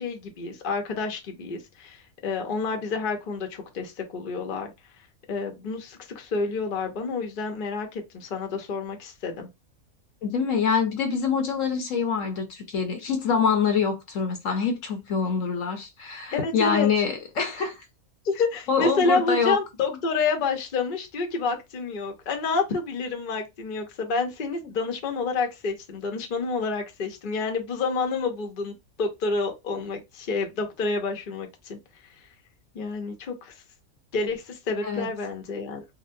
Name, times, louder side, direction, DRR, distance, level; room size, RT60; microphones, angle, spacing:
voice 1, 0.0-4.7 5.3-9.5 16.3-16.9 18.2-31.8 32.7-33.5 34.1-35.8, left 4 dB, 45° left, 0.8 m, -29 dB
voice 2, 10.2-17.8 18.7-19.6 34.8-35.1, left 6 dB, 65° left, 1.1 m, -25 dB
4.0 x 2.1 x 2.5 m
omnidirectional pair, 1.5 m